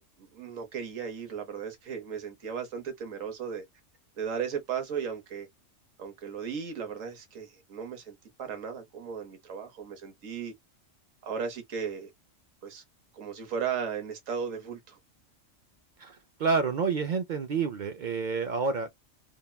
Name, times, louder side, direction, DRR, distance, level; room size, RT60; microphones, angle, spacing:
voice 1, 0.0-3.6 4.2-5.5 6.0-10.5 11.2-12.1 12.6-12.8 13.1-15.0, right 7 dB, 90° right, 1.3 m, -36 dB
voice 2, 16.0-19.0, right 5 dB, 70° right, 0.4 m, -29 dB
3.6 x 2.1 x 2.2 m
omnidirectional pair, 1.3 m